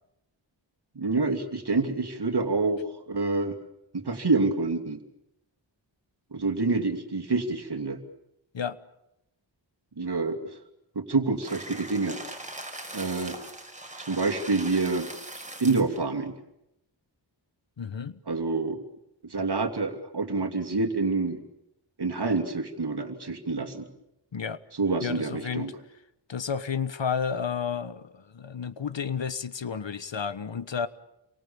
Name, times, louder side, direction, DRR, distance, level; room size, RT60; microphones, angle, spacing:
voice 1, 0.9-2.8 3.1-3.6 3.9-5.0 6.3-8.0 10.0-10.5 10.9-12.2 12.9-13.4 14.0-15.1 15.6-16.3 18.3-18.8 19.2-21.4 22.0-23.9 24.8-25.7, right 3 dB, 55° right, 2.9 m, -27 dB
sound 1, 11.4-16.0, right 1 dB, 15° right, 5.6 m, -41 dB
voice 2, 17.8-18.2 24.3-24.6 25.0-25.7 26.3-30.9, left 6 dB, 70° left, 1.4 m, -31 dB
29.5 x 23.5 x 7.1 m
wide cardioid pair, 75°, 46 cm